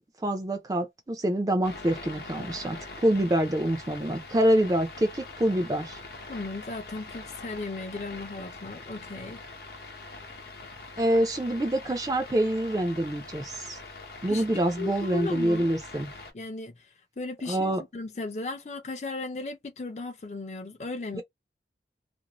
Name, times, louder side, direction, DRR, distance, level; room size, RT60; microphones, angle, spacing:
voice 1, 0.2-6.0 11.0-13.8 14.2-16.1 17.5-17.8 21.1-21.2, right 1 dB, 20° right, 0.4 m, -26 dB
sound 1, 1.6-16.3, left 3 dB, 60° left, 0.8 m, -43 dB
voice 2, 6.3-9.4 14.3-14.4 14.8-15.7 16.3-16.9 17.2-21.2, left 3 dB, 40° left, 0.5 m, -36 dB
2.6 x 2.0 x 2.9 m
head